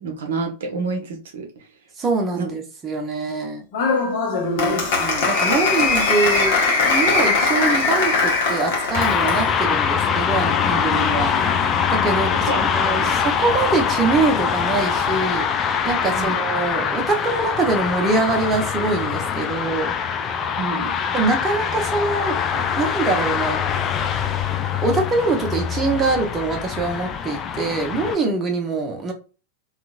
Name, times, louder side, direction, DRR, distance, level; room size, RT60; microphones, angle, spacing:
voice 1, 0.0-1.5 2.3-2.5 4.4-4.9 12.5-12.7 12.9-13.2 16.0-16.3 20.6-20.9, right 4 dB, 60° right, 2 dB, 0.7 m, -28 dB
voice 2, 2.0-3.6 5.0-6.6 6.9-11.6 11.9-15.4 15.8-19.9 21.1-23.6 24.8-29.1, right 3 dB, 20° right, 1 dB, 0.6 m, -23 dB
Applause, 3.7-9.5, left 4 dB, 50° left, 0.9 m, -20 dB
sound 1, 8.9-28.2, left 7 dB, 25° left, 0.3 m, -23 dB
2.8 x 2.4 x 2.3 m, 0.35 s
figure-of-eight pair, 90°, 0 cm